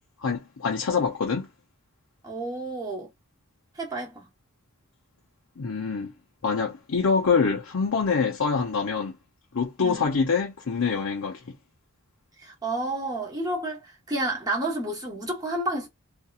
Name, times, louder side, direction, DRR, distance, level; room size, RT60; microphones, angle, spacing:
voice 1, 0.2-1.5 5.6-6.1 6.4-9.2 9.5-11.4, left 5 dB, 70° left, 0.6 m, -25 dB
voice 2, 2.2-3.1 3.7-4.3 9.8-10.1 12.4-15.9, right 1 dB, 15° right, 1.0 m, -30 dB
2.8 x 2.3 x 2.4 m
head